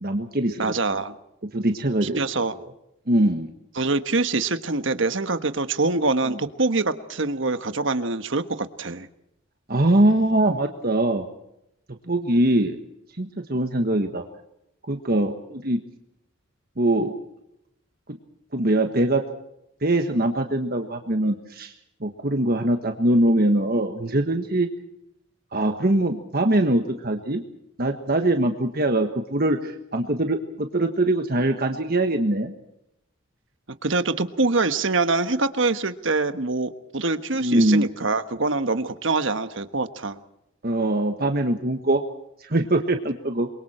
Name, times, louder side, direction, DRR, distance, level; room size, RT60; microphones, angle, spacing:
voice 1, 0.0-0.7 1.5-2.2 3.1-3.5 6.3-6.4 9.7-11.2 12.1-12.8 13.2-14.2 14.9-15.8 16.8-17.1 18.5-19.2 19.8-21.7 22.0-24.7 25.5-27.4 27.8-32.5 37.4-37.9 40.6-42.0 42.4-43.5, right 1 dB, 45° right, 5 dB, 1.4 m, -22 dB
voice 2, 0.6-1.2 2.0-2.5 3.8-9.1 33.8-40.2, right 3 dB, 65° right, 10 dB, 1.4 m, -24 dB
28.0 x 23.0 x 4.4 m, 0.81 s
head